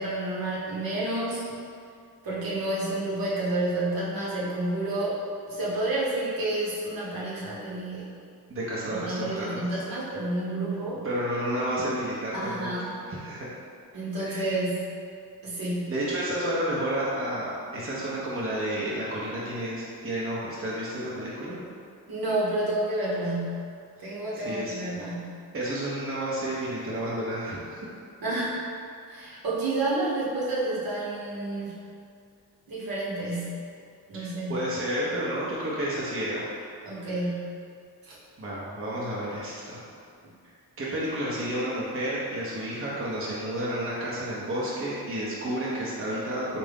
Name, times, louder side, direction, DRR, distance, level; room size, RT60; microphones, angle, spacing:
voice 1, 0.0-1.4 2.2-5.2 5.5-8.1 8.9-11.1 12.3-12.9 13.9-14.9 15.4-15.9 22.1-23.7 24.0-25.4 28.2-28.6 29.1-31.7 32.7-33.6 34.1-34.6 36.9-37.5 38.1-38.2, right 2 dB, 65° right, -7 dB, 1.1 m, -30 dB
voice 2, 8.5-9.8 11.0-12.7 13.1-13.5 14.2-14.6 15.6-21.6 24.0-24.1 24.3-24.8 25.5-27.8 29.2-29.3 34.1-36.5 37.0-37.1 38.4-39.8 40.8-46.6, right 1 dB, 35° right, -7 dB, 0.9 m, -31 dB
3.7 x 2.6 x 3.5 m, 2.3 s
cardioid pair, 65°, 38 cm